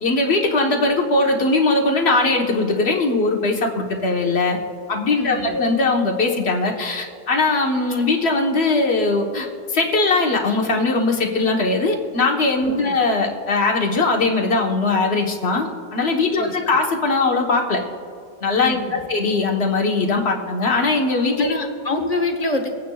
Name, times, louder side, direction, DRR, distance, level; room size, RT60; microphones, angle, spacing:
voice 1, 0.0-4.6 4.9-17.8 18.4-21.5, left 3 dB, 55° left, 1 dB, 1.4 m, -20 dB
voice 2, 5.2-5.6 12.7-13.0 16.4-16.8 18.6-19.1 21.4-22.7, left 2 dB, 35° left, 4 dB, 1.1 m, -26 dB
25.0 x 9.3 x 2.3 m, 2.2 s
omnidirectional pair, 1.3 m